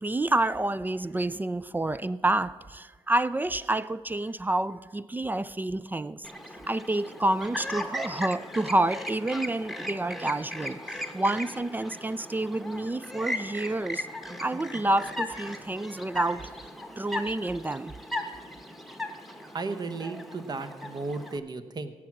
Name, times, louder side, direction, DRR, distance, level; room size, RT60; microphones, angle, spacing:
voice 1, 0.0-6.3 6.7-10.8 11.1-14.1 14.4-16.5 17.0-17.9, right 2 dB, 15° right, 0.3 m, -28 dB
Chirp tweet, 6.2-21.4, left 1 dB, ahead, 1.2 m, -37 dB
voice 2, 19.5-21.9, right 3 dB, 40° right, 1.0 m, -34 dB
17.0 x 6.2 x 6.0 m
cardioid pair, 65°, 11 cm